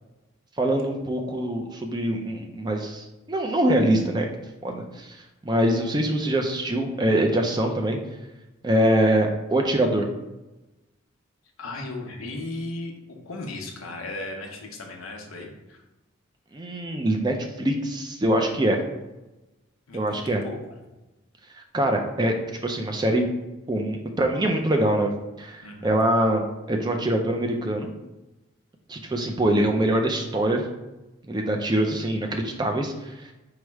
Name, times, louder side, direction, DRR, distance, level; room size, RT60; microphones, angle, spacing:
voice 1, 0.6-4.3 4.6-5.2 5.4-8.0 8.6-10.1 16.5-18.8 19.9-20.4 21.7-22.3 22.6-23.3 23.7-25.1 25.4-27.9 28.9-30.6 31.3-33.3, right 1 dB, 20° right, 2 dB, 0.4 m, -24 dB
voice 2, 11.6-15.8 19.9-20.8 25.6-25.9, left 2 dB, 80° left, 1 dB, 0.8 m, -36 dB
4.8 x 2.1 x 4.5 m, 1.0 s
head